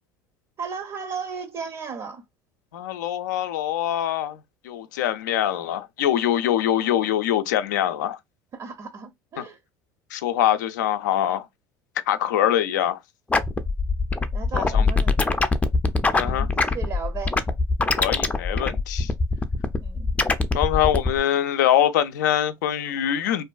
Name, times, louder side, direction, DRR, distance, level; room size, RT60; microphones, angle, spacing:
voice 1, 0.6-2.2 8.5-9.6 14.3-15.2 16.2-17.4 19.8-20.1, right 5 dB, 40° right, 0.5 m, -35 dB
voice 2, 2.7-4.4 4.6-8.2 9.4-9.5 10.1-11.5 12.1-13.0 14.5-14.9 16.1-16.5 18.0-19.1 20.5-23.4, left 11 dB, 85° left, 0.4 m, -23 dB
sound 1, 13.3-21.2, left 3 dB, 15° left, 0.4 m, -23 dB
2.5 x 2.2 x 2.3 m
hypercardioid pair, 80°, 10 cm